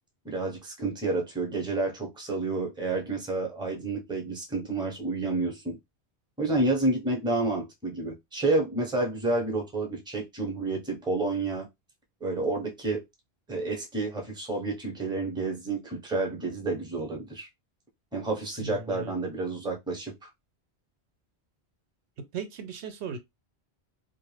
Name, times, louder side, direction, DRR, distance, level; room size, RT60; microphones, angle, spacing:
voice 1, 0.2-5.8 6.4-11.7 12.2-13.0 13.5-17.5 18.1-20.3, right 2 dB, 5° right, 0.7 m, -29 dB
voice 2, 18.6-19.2 22.3-23.2, right 5 dB, 85° right, 0.9 m, -37 dB
2.4 x 2.3 x 3.1 m
omnidirectional pair, 1.1 m